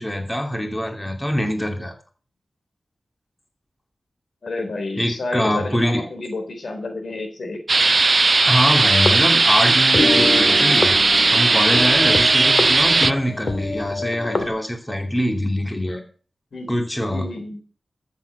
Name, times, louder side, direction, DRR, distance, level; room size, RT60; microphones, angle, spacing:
voice 1, 0.0-1.9 5.0-6.0 8.5-10.9 11.3-16.0 16.7-17.3, equal, 15° left, 4 dB, 2.7 m, -23 dB
voice 2, 4.4-7.6 12.3-12.6 16.5-16.7 17.1-17.6, left 2 dB, 75° left, 5 dB, 3.7 m, -30 dB
sound 1, 7.7-13.1, right 3 dB, 55° right, 0.5 m, -17 dB
sound 2, 8.9-9.7 9.9-14.5, left 2 dB, 55° left, 2.2 m, -26 dB
13.5 x 7.0 x 6.7 m, 0.40 s
cardioid pair, 50°, 0 cm